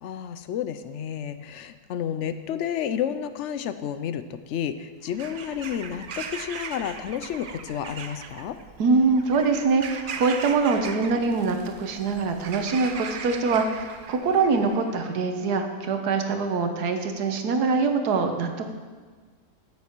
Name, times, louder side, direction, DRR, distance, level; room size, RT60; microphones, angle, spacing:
voice 1, 0.0-8.6, left 9 dB, 65° left, 11 dB, 0.7 m, -31 dB
Bird vocalization bird call bird song / Crow, 5.0-14.9, right 5 dB, 55° right, 0.6 m, -39 dB
voice 2, 8.8-18.7, right 4 dB, 85° right, 6 dB, 1.5 m, -24 dB
15.0 x 7.4 x 4.5 m, 1.5 s
omnidirectional pair, 1.6 m